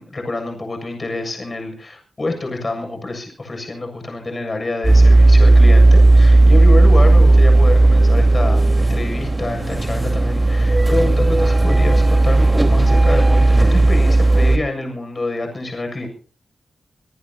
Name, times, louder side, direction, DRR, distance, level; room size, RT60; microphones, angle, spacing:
voice 1, 0.0-16.1, left 2 dB, 35° left, 4 dB, 7.3 m, -27 dB
sound 1, 4.8-14.6, right 2 dB, 20° right, 4.1 m, -13 dB
26.5 x 18.5 x 2.9 m, 0.42 s
wide cardioid pair, 90°, 0 cm